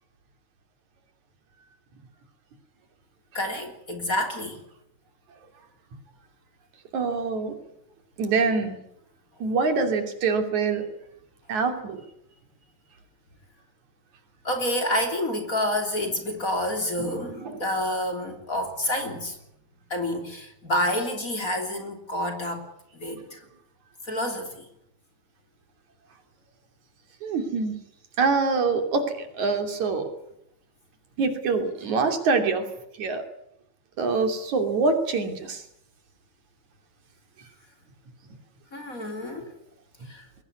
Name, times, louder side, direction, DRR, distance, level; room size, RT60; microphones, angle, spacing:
voice 1, 3.3-4.6 14.4-19.4 19.9-22.7 22.9-23.4 24.0-24.7 38.7-39.5 40.1-40.2, left 1 dB, 25° left, 5 dB, 3.6 m, -28 dB
voice 2, 6.9-7.5 8.2-8.8 9.4-10.8 11.5-12.0 17.0-17.6 27.2-27.7 28.2-30.1 31.2-32.6 33.0-33.2 34.0-35.6, right 4 dB, 75° right, 7 dB, 4.3 m, -25 dB
22.0 x 18.0 x 9.6 m, 0.75 s
omnidirectional pair, 3.4 m